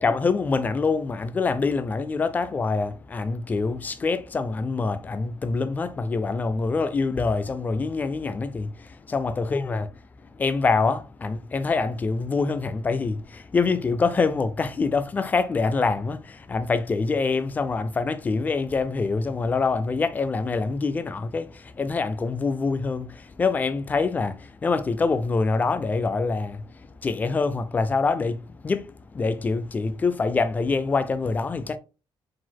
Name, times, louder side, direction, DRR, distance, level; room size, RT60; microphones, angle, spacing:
voice 1, 0.0-9.9 10.2-31.8, left 4 dB, 20° left, 0.4 m, -25 dB
4.6 x 3.9 x 2.2 m
cardioid pair, 175°, 9 cm